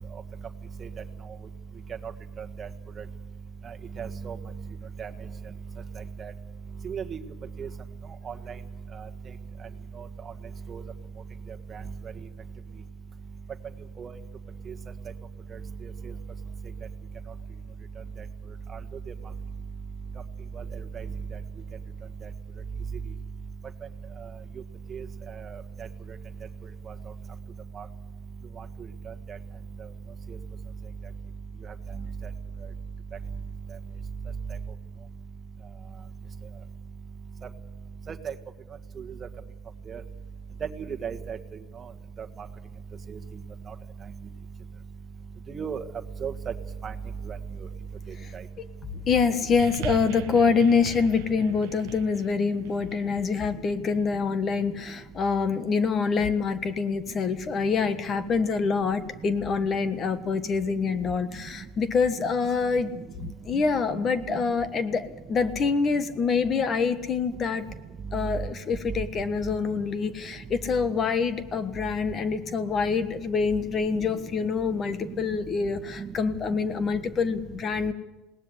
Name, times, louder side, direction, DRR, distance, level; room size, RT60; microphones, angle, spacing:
voice 1, 4.0-4.4 5.0-5.1 6.2-6.3 6.8-7.2 7.6-7.7 8.3-8.4 10.7-10.8 14.0-14.1 24.9-25.0 38.1-38.3 39.9-40.0 41.0-41.4 45.5-45.8 46.2-46.3 46.8-46.9 47.3-47.4, right 7 dB, 30° right, 6 dB, 1.6 m, -34 dB
voice 2, 49.1-62.9 63.4-67.6 68.1-77.9, left 5 dB, 35° left, 12 dB, 1.4 m, -26 dB
sound 1, 49.6-54.1 55.0-55.1, right 13 dB, 85° right, 1.0 m, -39 dB
20.5 x 18.5 x 8.1 m, 1.1 s
supercardioid pair, 130°, 0 cm